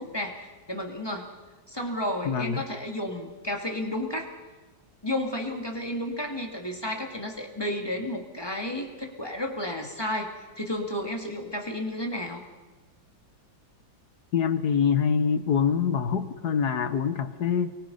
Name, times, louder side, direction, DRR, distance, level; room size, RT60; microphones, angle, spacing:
voice 1, 0.0-1.4 1.7-4.3 5.0-12.4, left 1 dB, 15° left, 2 dB, 2.6 m, -32 dB
voice 2, 2.3-2.6 14.3-17.7, left 7 dB, 60° left, 10 dB, 1.7 m, -25 dB
29.5 x 23.5 x 5.6 m, 1.2 s
omnidirectional pair, 2.0 m